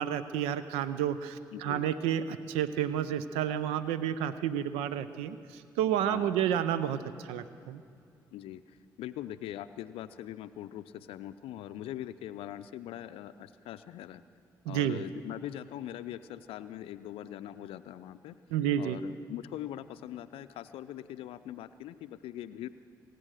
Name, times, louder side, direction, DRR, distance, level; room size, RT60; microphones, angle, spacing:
voice 1, 0.0-7.8 14.7-15.0 18.5-19.0, right 10 dB, 80° right, 14 dB, 0.5 m, -30 dB
voice 2, 1.5-1.9 6.1-6.3 8.3-14.2 14.7-18.4 18.8-22.7, left 12 dB, 70° left, 12 dB, 0.4 m, -42 dB
23.0 x 9.1 x 6.3 m, 2.5 s
hypercardioid pair, 45°, 10 cm